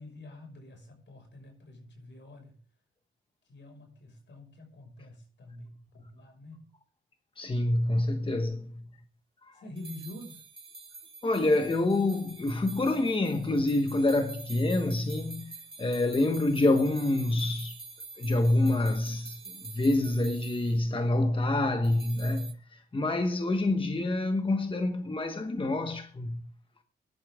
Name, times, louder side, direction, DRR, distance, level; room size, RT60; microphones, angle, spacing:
voice 1, 0.0-2.6 3.4-6.7 9.5-10.4, left 1 dB, 65° left, 5.8 m, -47 dB
voice 2, 7.4-8.8 9.5-9.6 11.2-17.8 18.2-19.4 19.6-22.5 22.9-26.4, left 2 dB, 25° left, 1.2 m, -27 dB
sound 1, 9.8-20.9 21.8-22.5, right 3 dB, 25° right, 2.2 m, -47 dB
17.0 x 11.5 x 3.7 m
cardioid pair, 85°, 20 cm